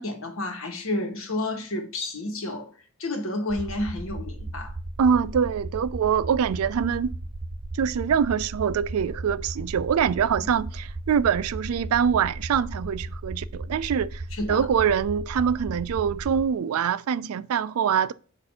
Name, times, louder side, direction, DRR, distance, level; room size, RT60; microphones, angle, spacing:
voice 1, 0.0-2.7 3.0-4.7 14.3-14.7, left 2 dB, 65° left, 1.2 m, -30 dB
sound 1, 3.5-16.4, right 2 dB, 55° right, 0.8 m, -35 dB
voice 2, 5.0-7.1 7.7-14.2 14.5-18.1, right 7 dB, 80° right, 0.3 m, -24 dB
6.5 x 2.6 x 5.6 m
head